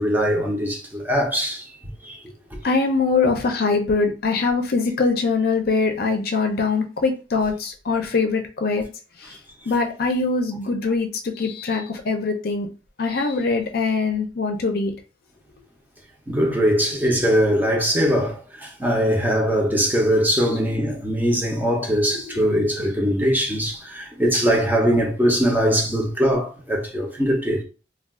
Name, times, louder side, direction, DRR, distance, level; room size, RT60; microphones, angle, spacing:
voice 1, 0.0-1.6 2.0-2.2 16.3-27.6, equal, 10° right, 0.6 m, -21 dB
voice 2, 2.6-8.8 9.7-12.7 13.0-14.9 22.0-22.6, left 4 dB, 60° left, 0.5 m, -23 dB
2.3 x 2.3 x 3.5 m
head